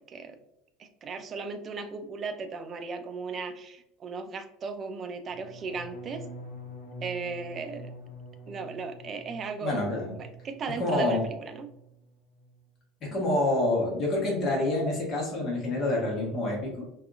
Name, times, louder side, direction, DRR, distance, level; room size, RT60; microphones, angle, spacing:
voice 1, 0.1-0.4 0.8-6.3 7.0-7.9 8.5-9.8 10.2-11.7 13.1-13.3, right 4 dB, 35° right, 8 dB, 0.3 m, -36 dB
sound 1, 5.3-11.2 11.5-12.0 12.3-12.7, left 1 dB, 75° left, 0.6 m, -46 dB
voice 2, 9.6-10.1 10.8-11.2 13.0-16.8, left 2 dB, 45° left, -1 dB, 1.1 m, -27 dB
2.7 x 2.3 x 2.4 m, 0.83 s
figure-of-eight pair, 70°, 0 cm